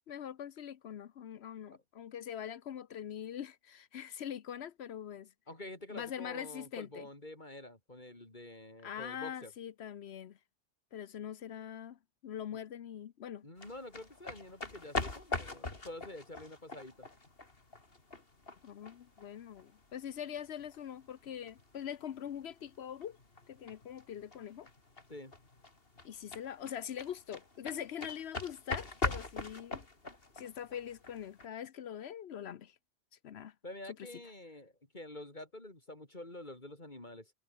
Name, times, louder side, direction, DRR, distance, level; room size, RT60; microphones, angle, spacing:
voice 1, 0.1-5.3 5.9-7.0 8.8-10.4 10.9-13.5 18.6-23.2 23.5-24.7 26.0-29.9 30.4-32.7 33.2-33.5, left 9 dB, 75° left, 1.0 m, -43 dB
voice 2, 5.5-9.5 12.5-12.6 13.4-17.1 25.1-25.3 33.6-37.3, left 1 dB, 45° left, 3.8 m, -48 dB
sound 1, 13.6-31.5, left 3 dB, 60° left, 3.2 m, -42 dB
omnidirectional pair, 1.1 m